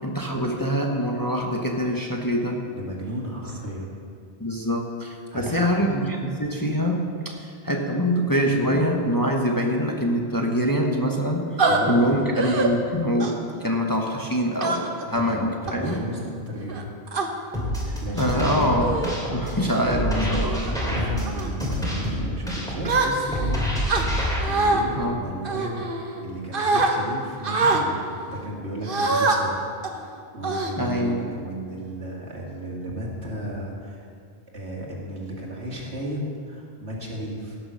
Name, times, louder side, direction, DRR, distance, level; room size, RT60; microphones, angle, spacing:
voice 1, 0.0-2.6 4.4-15.9 17.9-19.0 19.3-20.8 25.0-25.2 30.8-31.2, equal, 20° left, 0 dB, 1.0 m, -24 dB
voice 2, 2.7-3.9 5.3-5.6 11.6-12.3 15.1-16.9 17.8-18.7 19.8-23.6 24.4-34.1 34.5-37.6, right 1 dB, 70° right, -3 dB, 2.5 m, -34 dB
sound 1, 11.6-11.8 12.4-12.7 13.2-13.5 14.6-15.0 15.7-16.0 16.7-17.3 18.1-18.3 18.8-19.2 19.7-19.9 20.4-20.7 21.2-21.5 22.8-23.5 23.9-24.8 25.4-26.2 26.5-26.9 27.4-27.8 28.8-29.4 29.8-30.0 30.4-31.1, right 3 dB, 50° right, 1.2 m, -24 dB
sound 2, 17.5-24.4, equal, 5° left, 2.8 m, -27 dB
16.5 x 6.7 x 6.4 m, 2.4 s
omnidirectional pair, 1.2 m